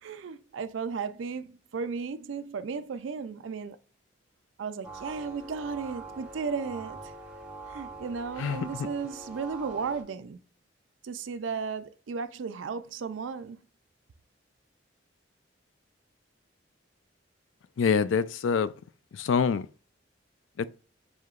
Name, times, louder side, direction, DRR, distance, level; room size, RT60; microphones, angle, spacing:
voice 1, 0.0-3.8 4.6-7.0 7.7-10.4 11.0-13.6, right 5 dB, 85° right, 0.4 m, -35 dB
sound 1, 4.8-10.0, right 3 dB, 5° right, 1.0 m, -43 dB
voice 2, 17.8-18.7 19.1-19.7 20.6-20.7, left 6 dB, 90° left, 0.4 m, -25 dB
6.2 x 2.8 x 2.4 m
head